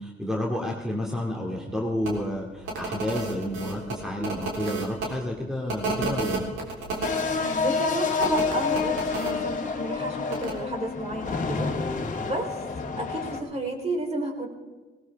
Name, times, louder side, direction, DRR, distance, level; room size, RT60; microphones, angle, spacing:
voice 1, 0.0-6.4, left 1 dB, ahead, -1 dB, 2.3 m, -30 dB
sound 1, 2.0-2.1 2.6-5.1 5.7-7.2 8.2-9.3 10.3-10.5, right 3 dB, 80° right, 3.6 m, -31 dB
sound 2, 7.0-13.4, left 4 dB, 40° left, 2.0 m, -28 dB
voice 2, 7.3-12.6 13.0-14.5, right 1 dB, 30° right, 2 dB, 3.9 m, -32 dB
19.0 x 18.0 x 3.5 m, 1.3 s
cardioid pair, 90°, 20 cm